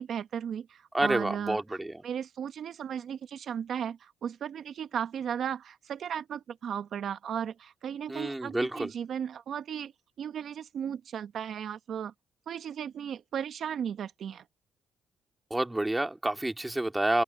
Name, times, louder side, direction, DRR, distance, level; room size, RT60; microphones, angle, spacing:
voice 1, 0.0-1.8 2.0-9.9 10.2-12.1 12.5-14.4, right 8 dB, 65° right, 1.0 m, -35 dB
voice 2, 0.9-2.0 8.1-8.9 15.5-17.2, right 1 dB, 10° right, 2.5 m, -29 dB
open air
cardioid pair, 90°, 0 cm